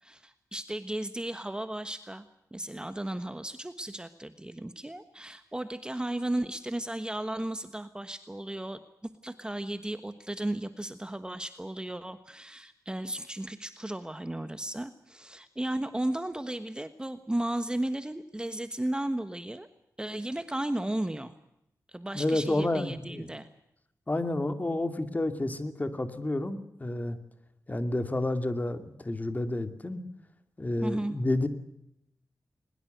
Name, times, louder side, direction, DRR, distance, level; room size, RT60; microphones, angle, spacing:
voice 1, 0.0-2.2 2.5-19.7 20.0-21.4 21.9-23.5 30.8-31.1, right 1 dB, 15° right, 10 dB, 1.3 m, -35 dB
voice 2, 22.1-23.3 24.1-27.2 27.7-30.0 30.6-31.5, left 2 dB, 25° left, 9 dB, 2.5 m, -30 dB
22.0 x 21.0 x 8.0 m, 0.80 s
wide cardioid pair, 90°, 6 cm